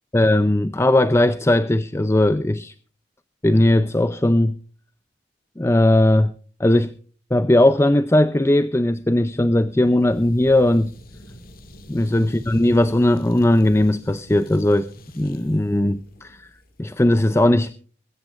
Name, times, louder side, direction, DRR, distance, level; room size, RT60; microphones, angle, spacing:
voice 1, 0.1-2.7 3.4-4.6 5.6-6.3 6.6-6.9 7.3-10.9 11.9-14.9 15.2-16.5 16.8-17.7, left 1 dB, 15° left, 12 dB, 0.5 m, -18 dB
sound 1, 9.0-17.0, equal, 50° left, 1.9 m, -46 dB
22.0 x 14.5 x 2.5 m, 0.41 s
head